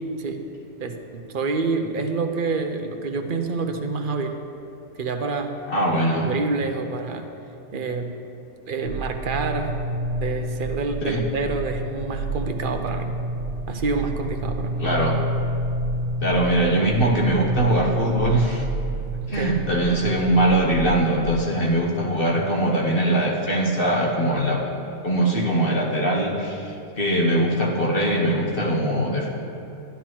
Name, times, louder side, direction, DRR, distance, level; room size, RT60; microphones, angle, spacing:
voice 1, 0.8-4.3 5.0-5.5 5.9-7.3 7.7-8.1 8.7-9.7 10.2-13.1 13.7-14.8 19.3-19.6, right 4 dB, 50° right, 5 dB, 0.8 m, -27 dB
voice 2, 5.7-6.3 11.0-11.2 14.8-15.2 16.2-18.6 19.3-24.6 25.0-29.3, right 1 dB, 50° left, -2 dB, 1.2 m, -22 dB
sound 1, 8.8-21.4, right 1 dB, 80° right, 0.9 m, -29 dB
11.5 x 11.5 x 3.0 m, 2.7 s
omnidirectional pair, 1.2 m